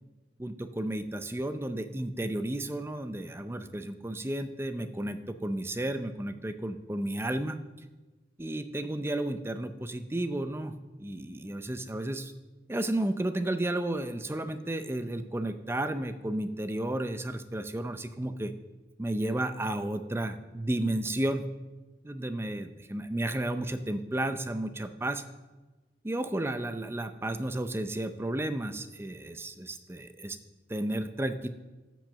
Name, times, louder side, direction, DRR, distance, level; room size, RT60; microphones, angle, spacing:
voice 1, 0.4-7.6 8.4-10.7 11.0-12.3 12.7-18.5 19.0-21.4 22.0-25.2 26.0-30.4 30.7-31.5, right 1 dB, 15° right, 10 dB, 0.5 m, -32 dB
10.0 x 6.2 x 6.8 m, 1.2 s
head